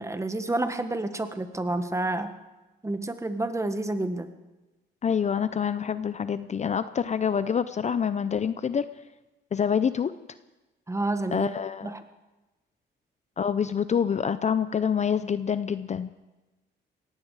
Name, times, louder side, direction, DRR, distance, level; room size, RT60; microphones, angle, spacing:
voice 1, 0.0-2.4 2.8-4.3 10.9-11.5 11.8-12.0, right 2 dB, 15° right, 9 dB, 1.4 m, -29 dB
voice 2, 5.0-8.8 9.5-10.1 11.3-11.9 13.4-16.1, left 7 dB, 35° left, 14 dB, 0.6 m, -26 dB
18.0 x 15.5 x 4.9 m, 1.1 s
cardioid pair, 90°, 20 cm